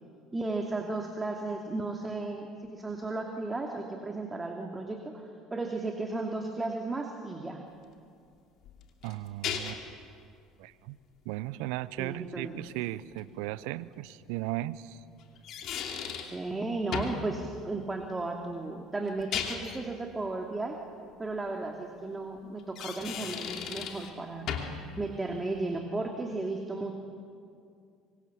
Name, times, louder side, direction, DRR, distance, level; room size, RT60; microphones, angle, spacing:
voice 1, 0.3-7.6 12.0-12.6 16.3-20.8 21.2-24.5 25.0-26.9, right 2 dB, 20° right, 2 dB, 2.6 m, -34 dB
sound 1, 8.6-10.0 13.2-13.3 15.2-16.4 16.9-17.3 19.1-19.8 22.6-24.1 24.5-24.9, left 8 dB, 55° left, 2.8 m, -36 dB
voice 2, 9.0-9.8 10.6-11.0 11.2-15.0, right 16 dB, 75° right, 18 dB, 0.7 m, -36 dB
25.5 x 24.5 x 7.2 m, 2.3 s
hypercardioid pair, 65°, 0 cm